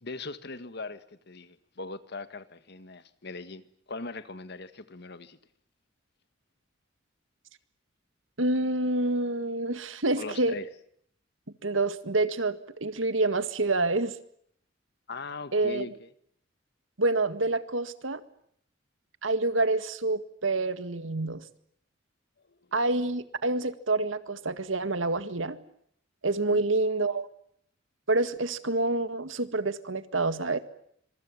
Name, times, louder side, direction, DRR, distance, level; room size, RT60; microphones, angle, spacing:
voice 1, 0.0-5.4 10.1-10.7 15.1-16.1 22.5-22.6 26.4-26.6, left 3 dB, 55° left, 1.7 m, -40 dB
voice 2, 8.4-10.6 11.6-14.2 15.5-15.9 17.0-18.2 19.2-21.4 22.7-25.6 26.2-27.3 28.1-30.6, right 2 dB, 80° right, 1.9 m, -27 dB
26.0 x 24.0 x 7.3 m
head